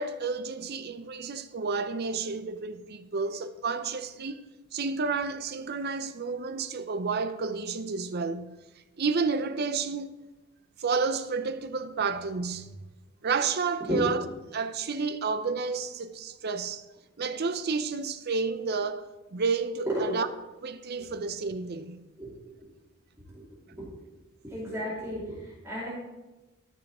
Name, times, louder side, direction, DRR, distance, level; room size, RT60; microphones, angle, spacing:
voice 1, 0.0-4.4 4.7-8.6 9.0-10.1 10.8-12.7 13.2-14.2 14.5-16.8 17.2-19.1 19.3-20.3 20.6-22.0, right 4 dB, 45° right, 0.6 m, -30 dB
voice 2, 24.4-25.9, equal, 10° right, 2.7 m, -32 dB
13.5 x 5.7 x 4.2 m
head